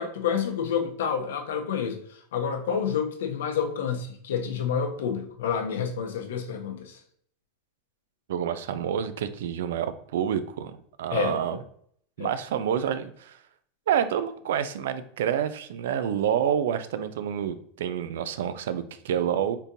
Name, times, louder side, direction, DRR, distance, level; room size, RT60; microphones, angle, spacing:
voice 1, 0.0-7.0 11.1-11.6 12.2-12.3, left 7 dB, 85° left, 5 dB, 0.6 m, -29 dB
voice 2, 8.3-11.6 12.2-13.4 13.9-19.6, right 9 dB, 85° right, 12 dB, 0.3 m, -28 dB
3.6 x 2.7 x 2.6 m, 0.65 s
supercardioid pair, 125°, 0 cm